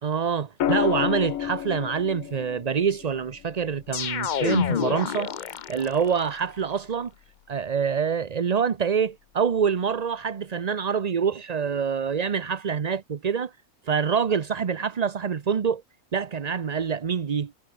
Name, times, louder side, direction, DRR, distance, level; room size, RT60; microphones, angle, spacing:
voice 1, 0.0-5.3 5.7-7.1 7.5-13.5 13.9-15.8 16.1-17.6, right 6 dB, 40° right, 0.6 m, -26 dB
sound 1, 0.6-4.7 6.4-6.8, left 11 dB, 75° left, 1.2 m, -31 dB
sound 2, 3.9-6.2, left 8 dB, 50° left, 0.6 m, -28 dB
omnidirectional pair, 1.5 m